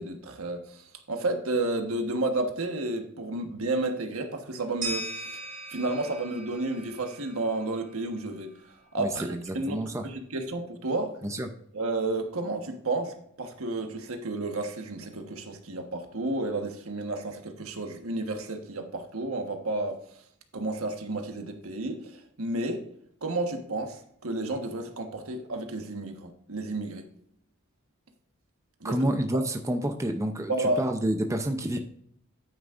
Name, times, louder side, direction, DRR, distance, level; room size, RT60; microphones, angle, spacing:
voice 1, 0.0-5.1 5.7-8.5 8.9-9.2 9.5-9.8 10.0-11.2 11.7-20.0 20.5-22.8 23.2-27.1 28.8-29.1 30.5-30.8, right 2 dB, 75° right, 5 dB, 1.4 m, -31 dB
sound 1, 4.8-7.7, right 2 dB, 35° right, 2.0 m, -38 dB
voice 2, 9.0-10.0 11.2-11.5 28.8-31.8, right 1 dB, 15° right, 5 dB, 0.6 m, -29 dB
9.4 x 9.1 x 2.5 m, 0.69 s
head